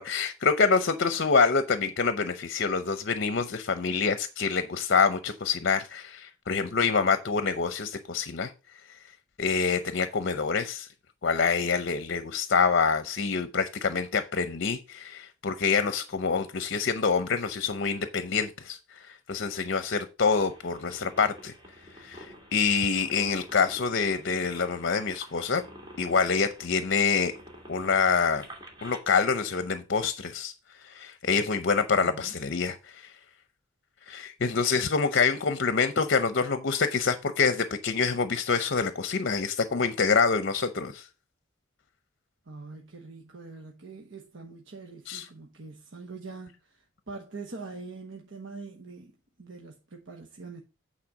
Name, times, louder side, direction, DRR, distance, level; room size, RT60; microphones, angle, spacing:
voice 1, 0.0-8.5 9.4-10.9 11.2-21.5 21.9-25.6 26.0-27.3 27.7-28.5 28.8-30.5 30.8-33.1 34.1-41.1 45.1-45.3, left 5 dB, 60° left, 0.7 m, -26 dB
sound 1, 20.4-29.0, equal, 25° right, 2.4 m, -49 dB
voice 2, 32.0-32.3 42.5-50.6, right 3 dB, 65° right, 1.1 m, -44 dB
8.8 x 4.2 x 6.3 m
head